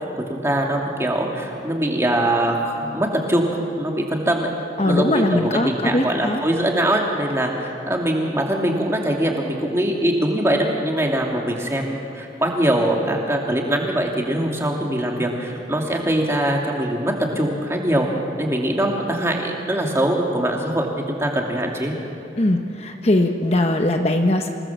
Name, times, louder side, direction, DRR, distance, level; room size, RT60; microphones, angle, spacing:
voice 1, 0.1-4.5 4.8-18.1 18.4-22.0, right 1 dB, 15° right, 0 dB, 2.6 m, -22 dB
voice 2, 4.8-6.4 22.4-24.5, left 1 dB, 35° left, 4 dB, 1.0 m, -20 dB
27.0 x 18.5 x 7.3 m, 2.8 s
head